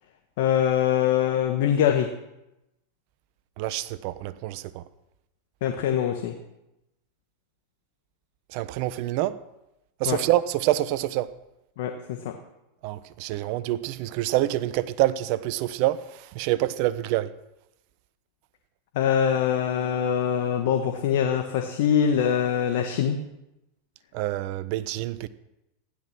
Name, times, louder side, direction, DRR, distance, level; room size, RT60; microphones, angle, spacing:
voice 1, 0.4-2.1 5.6-6.3 10.0-10.2 11.8-12.3 18.9-23.2, left 9 dB, 65° left, 1.5 m, -23 dB
voice 2, 3.6-4.8 8.5-9.4 10.0-11.3 12.8-16.0 16.3-17.3 24.1-25.3, right 15 dB, 55° right, 0.9 m, -26 dB
15.5 x 11.5 x 6.1 m
hypercardioid pair, 95°, 0 cm